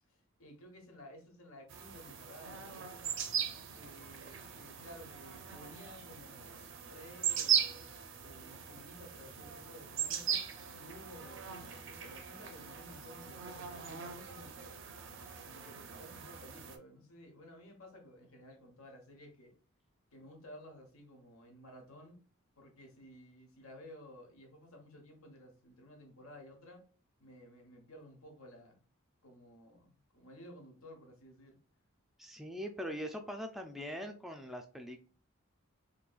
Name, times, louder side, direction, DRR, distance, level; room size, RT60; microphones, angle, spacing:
voice 1, 0.1-3.1 3.7-7.8 8.2-14.8 15.4-19.5 20.1-22.2 22.6-26.8 27.2-28.8 29.2-31.6, equal, 85° left, 2 dB, 1.2 m, -55 dB
sound 1, 1.7-16.8, right 8 dB, 60° right, 0.5 m, -39 dB
voice 2, 32.2-35.1, equal, ahead, 3 dB, 0.3 m, -42 dB
3.8 x 2.7 x 2.4 m, 0.38 s
head